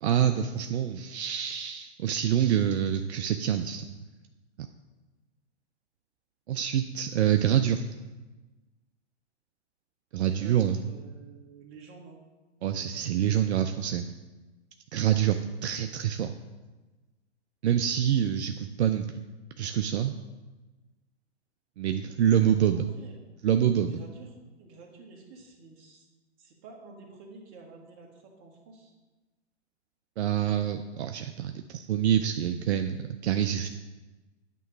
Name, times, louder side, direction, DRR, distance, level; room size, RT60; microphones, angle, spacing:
voice 1, 0.0-4.0 6.5-7.8 10.1-10.8 12.6-14.1 14.9-16.3 17.6-19.2 19.6-20.2 21.8-22.9 23.4-23.9 30.2-33.0 33.2-33.7, right 10 dB, 70° right, 7 dB, 0.5 m, -26 dB
voice 2, 10.2-12.2 22.4-23.2 23.9-26.1 26.4-28.9, right 4 dB, 35° right, 0 dB, 1.5 m, -50 dB
9.1 x 3.0 x 6.0 m, 1.2 s
hypercardioid pair, 125°, 35 cm